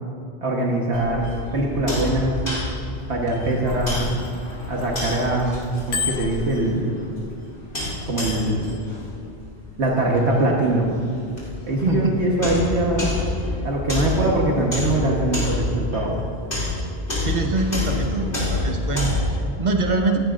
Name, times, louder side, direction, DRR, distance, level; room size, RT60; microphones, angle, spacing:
voice 1, 0.4-1.2 1.5-2.3 3.1-4.1 4.7-5.6 5.9-7.0 8.1-8.7 9.8-10.9 11.7-13.1 13.6-16.2, right 1 dB, 70° right, -2 dB, 1.5 m, -22 dB
sound 1, 0.9-19.4, left 1 dB, 50° left, 3.2 m, -29 dB
Bicycle bell, 3.3-5.2 5.6-7.3 7.9-8.1, left 5 dB, 70° left, 1.1 m, -30 dB
voice 2, 11.9-12.2 17.2-20.2, right 2 dB, 40° right, 3 dB, 1.2 m, -24 dB
17.0 x 14.5 x 2.5 m, 2.3 s
omnidirectional pair, 1.2 m